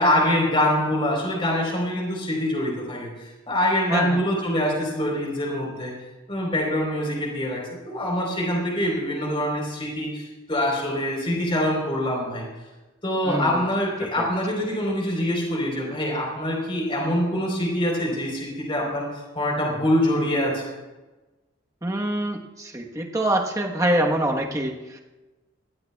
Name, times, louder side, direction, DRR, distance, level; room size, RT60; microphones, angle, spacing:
voice 1, 0.0-5.9 6.3-7.6 7.9-12.4 13.0-19.0 19.3-20.6, left 1 dB, 25° left, -1 dB, 4.0 m, -24 dB
voice 2, 3.9-4.2 13.2-13.6 14.0-14.3 21.8-25.0, right 1 dB, 15° right, 1 dB, 1.2 m, -25 dB
21.0 x 16.0 x 2.3 m, 1.1 s
head